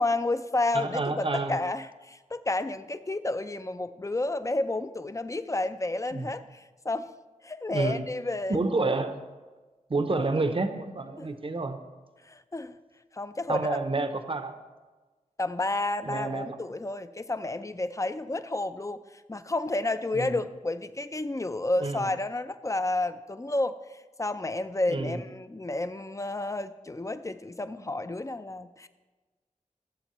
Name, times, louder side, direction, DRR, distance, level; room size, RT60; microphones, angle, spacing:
voice 1, 0.0-7.1 7.4-8.6 10.1-10.2 11.2-11.3 12.3-12.8 13.1-13.8 15.4-19.0 19.3-28.9, left 2 dB, 25° left, 12 dB, 0.5 m, -31 dB
voice 2, 0.7-1.6 6.1-6.3 7.7-8.1 8.5-9.2 9.9-11.8 13.5-14.5 16.0-16.6 20.1-20.3 21.8-22.1 24.9-25.2, right 3 dB, 40° right, 8 dB, 0.7 m, -29 dB
16.0 x 7.6 x 3.1 m, 1.3 s
wide cardioid pair, 50°, 14 cm